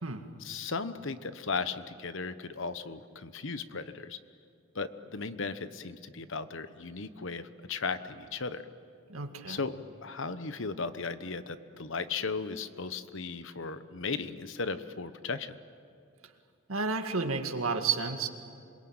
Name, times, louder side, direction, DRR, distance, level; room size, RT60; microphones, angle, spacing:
voice 1, 0.4-4.2 4.7-8.6 9.5-9.7 10.0-15.5, left 4 dB, 65° left, 12 dB, 1.1 m, -36 dB
voice 2, 9.1-9.6 16.7-18.3, right 4 dB, 90° right, 5 dB, 2.0 m, -31 dB
27.0 x 22.0 x 8.9 m, 2.5 s
head